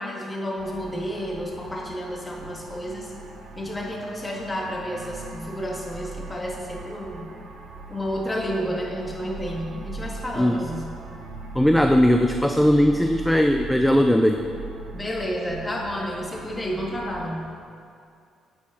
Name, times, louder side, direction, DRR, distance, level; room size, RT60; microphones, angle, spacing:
voice 1, 0.0-3.1 3.6-7.3 7.9-10.9 14.9-17.5, equal, 20° left, -1 dB, 1.8 m, -31 dB
sound 1, 0.6-17.3, right 3 dB, 85° right, 1.1 m, -40 dB
voice 2, 11.6-14.4, equal, 5° left, 5 dB, 0.4 m, -19 dB
9.4 x 8.8 x 3.9 m, 2.4 s
cardioid pair, 90°, 0 cm